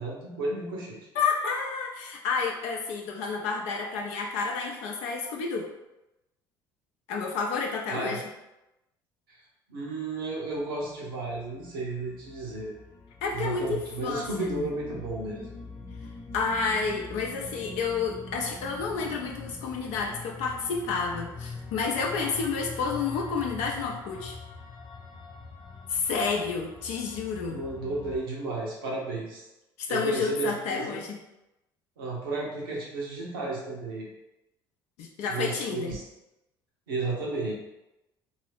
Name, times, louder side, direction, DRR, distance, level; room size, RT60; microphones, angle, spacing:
voice 1, 0.0-1.0 7.9-8.2 9.3-9.4 9.7-12.7 13.3-15.5 27.5-29.5 29.9-31.0 32.0-34.1 35.3-36.0 36.9-37.5, right 2 dB, 85° right, -4 dB, 0.9 m, -33 dB
voice 2, 1.1-5.7 7.1-8.2 13.2-14.7 16.3-24.4 25.9-27.6 29.8-31.2 35.0-35.9, left 5 dB, 70° left, 0 dB, 0.5 m, -30 dB
sound 1, 10.6-28.2, left 3 dB, 45° left, 0.8 m, -43 dB
2.6 x 2.6 x 3.5 m, 0.95 s
hypercardioid pair, 60°, 11 cm